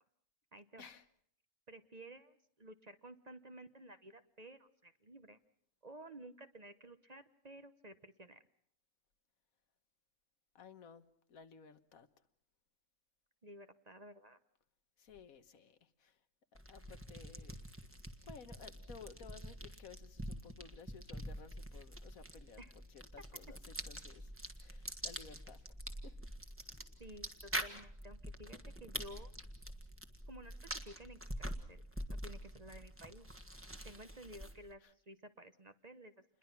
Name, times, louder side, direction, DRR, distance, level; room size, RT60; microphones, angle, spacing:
voice 1, 0.5-0.9 1.7-5.4 5.8-8.4 13.4-14.4 22.6-22.7 27.0-29.3 30.3-31.8 32.1-33.3 33.8-36.1, right 1 dB, 35° right, 10 dB, 1.0 m, -54 dB
voice 2, 10.5-11.0 11.3-12.1 15.0-16.2 16.7-17.6 18.2-24.3 24.6-25.6 26.0-26.1 34.8-34.9, left 5 dB, 80° left, 11 dB, 1.6 m, -56 dB
sound 1, 16.5-34.7, right 1 dB, 10° right, 1.5 m, -46 dB
28.0 x 21.5 x 5.9 m, 0.67 s
omnidirectional pair, 1.5 m